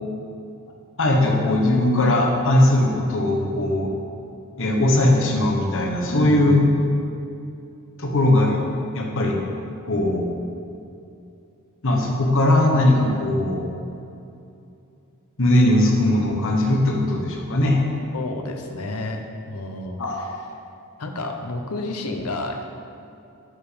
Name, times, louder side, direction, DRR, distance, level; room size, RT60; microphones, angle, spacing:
voice 1, 1.0-3.9 4.6-6.6 8.0-8.6 8.9-9.4 9.8-10.3 11.8-13.6 15.4-17.8 20.0-20.3, left 1 dB, 60° left, 0 dB, 1.2 m, -19 dB
voice 2, 6.1-6.7 18.1-20.3 21.0-22.6, left 2 dB, 80° left, 5 dB, 0.9 m, -30 dB
9.7 x 5.3 x 5.0 m, 2.6 s
head